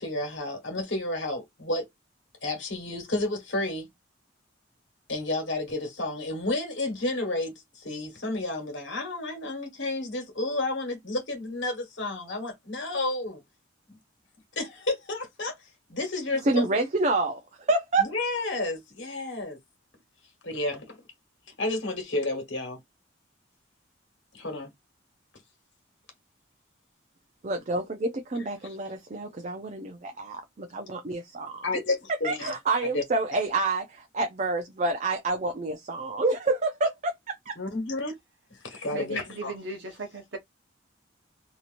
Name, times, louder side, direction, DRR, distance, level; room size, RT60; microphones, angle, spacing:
voice 1, 0.0-1.9 2.4-3.9 5.1-13.4 13.9-14.0 14.5-15.6 15.9-16.7 18.0-19.6 20.4-21.0 21.6-22.8 24.3-24.7 31.6-32.5 32.9-33.0 37.6-38.1 38.5-39.5, left 2 dB, 65° left, 1.4 m, -31 dB
voice 2, 16.4-18.1 27.4-31.6 32.2-37.6, right 2 dB, 40° right, 0.5 m, -28 dB
voice 3, 38.9-40.4, right 3 dB, 65° right, 1.0 m, -37 dB
2.9 x 2.8 x 2.5 m
head